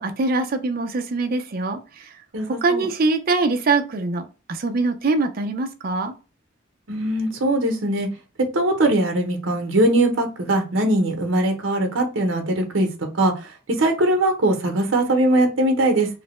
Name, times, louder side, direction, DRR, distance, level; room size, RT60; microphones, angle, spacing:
voice 1, 0.0-2.1 2.5-6.1, right 3 dB, 50° right, 0.5 m, -23 dB
voice 2, 2.3-2.8 6.9-8.1 8.5-12.9 13.2-13.3 13.8-16.1, right 1 dB, 75° right, 0.8 m, -20 dB
3.2 x 2.1 x 3.0 m
head